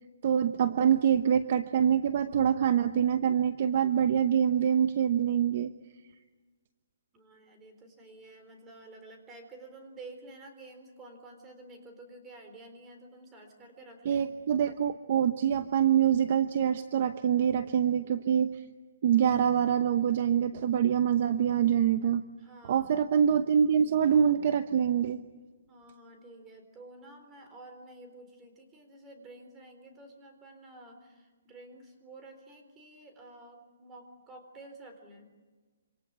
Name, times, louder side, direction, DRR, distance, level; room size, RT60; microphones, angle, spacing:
voice 1, 0.2-5.7 14.0-18.6 19.0-22.2 22.7-25.2, right 8 dB, 35° right, 11 dB, 0.9 m, -25 dB
voice 2, 7.1-14.3 22.4-22.9 25.7-35.3, right 2 dB, 10° right, 5 dB, 4.0 m, -50 dB
27.0 x 26.5 x 8.2 m, 1.3 s
hypercardioid pair, 175°, 0 cm